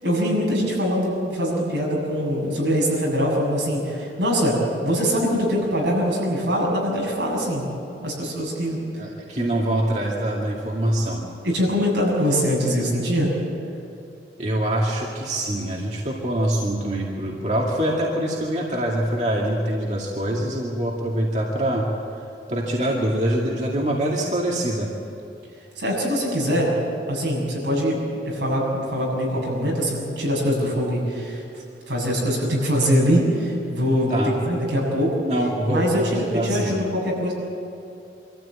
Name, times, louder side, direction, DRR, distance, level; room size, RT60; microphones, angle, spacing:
voice 1, 0.0-7.7 8.0-8.8 11.4-13.3 25.8-26.7 27.1-31.4 31.9-34.2 34.5-35.2 35.7-37.3, equal, 90° right, -3 dB, 7.3 m, -23 dB
voice 2, 9.0-11.2 14.4-21.8 22.5-24.9 34.1-34.3 35.2-36.8, right 1 dB, 40° right, -3 dB, 2.3 m, -24 dB
25.0 x 14.0 x 8.8 m, 2.6 s
head